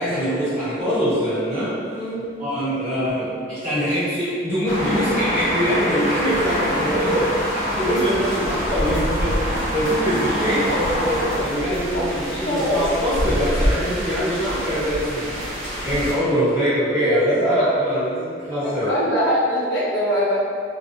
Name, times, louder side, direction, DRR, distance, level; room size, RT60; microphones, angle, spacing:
voice 1, 0.0-1.7 2.4-7.3 7.5-15.5 15.8-18.9, equal, 20° right, -21 dB, 1.1 m, -23 dB
voice 2, 1.9-2.3 6.9-7.4 11.9-12.8 17.1-17.9 18.6-20.4, equal, 60° left, -6 dB, 0.6 m, -22 dB
sound 1, 4.6-11.3, equal, 15° left, 0.5 m, -26 dB
sound 2, 6.2-16.1, equal, 45° right, 0.9 m, -28 dB
2.5 x 2.2 x 2.5 m, 2.2 s
head